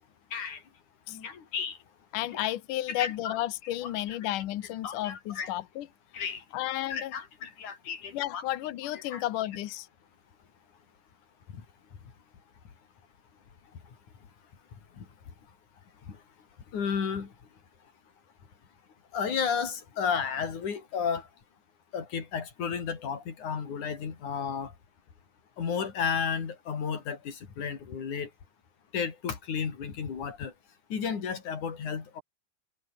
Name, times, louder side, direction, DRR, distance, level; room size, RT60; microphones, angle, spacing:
voice 1, 0.3-0.6 1.1-1.8 3.0-3.4 3.8-4.1 4.8-5.5 6.1-6.4 6.9-8.4 9.1-9.2 11.5-11.6 15.0-15.1 16.1-16.2 16.7-17.3 19.1-21.3 21.9-24.7 25.6-28.3 28.9-30.5 30.9-32.2, left 6 dB, 45° left, 4.6 m, -33 dB
voice 2, 2.1-5.9 6.5-7.1 8.1-9.9, left 15 dB, 75° left, 1.8 m, -32 dB
omnidirectional pair, 5.4 m